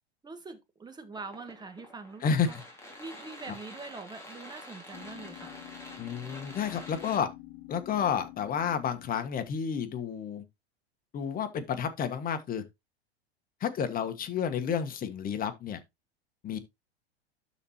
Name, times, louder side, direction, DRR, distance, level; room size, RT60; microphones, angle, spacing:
voice 1, 0.2-2.6 3.0-5.6, right 4 dB, 15° right, 1.6 m, -44 dB
sound 1, 1.1-7.2, left 1 dB, 10° left, 3.0 m, -48 dB
voice 2, 2.2-2.6 6.0-7.3 7.7-10.4 11.1-12.6 13.6-15.8 16.4-16.6, left 7 dB, 25° left, 1.3 m, -31 dB
sound 2, 4.9-9.9, left 16 dB, 50° left, 0.8 m, -49 dB
12.5 x 4.2 x 2.9 m
hypercardioid pair, 95°, 32 cm